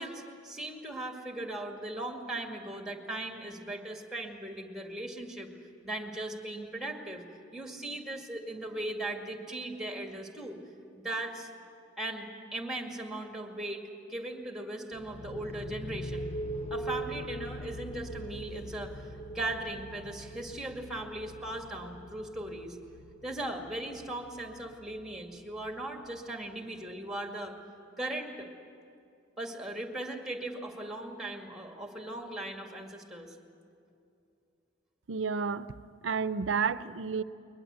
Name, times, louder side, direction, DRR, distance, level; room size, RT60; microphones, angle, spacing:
voice 1, 0.0-5.5 5.8-7.2 7.5-10.6 11.0-11.5 12.0-16.3 16.7-19.0 19.3-22.8 23.2-27.6 28.0-28.5 29.4-33.4, right 1 dB, 5° right, 3 dB, 2.1 m, -38 dB
sound 1, 14.9-26.5, right 1 dB, 35° left, 0.5 m, -42 dB
voice 2, 35.1-35.7 36.0-37.2, right 5 dB, 85° right, 15 dB, 0.6 m, -30 dB
22.0 x 20.5 x 8.2 m, 2.6 s
head